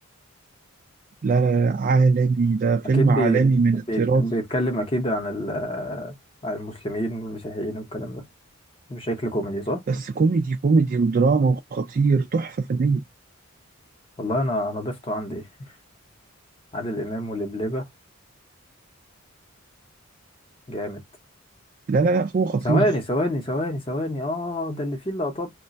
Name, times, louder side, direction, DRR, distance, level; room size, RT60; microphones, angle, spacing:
voice 1, 1.2-4.2 9.9-13.0 21.9-22.9, right 4 dB, 40° right, 0.3 m, -21 dB
voice 2, 2.9-3.6 3.9-6.1 6.4-8.2 8.9-9.8 14.2-15.5 16.7-17.8 20.7-21.0 22.6-25.5, equal, 25° left, 0.7 m, -27 dB
2.4 x 2.1 x 3.9 m
head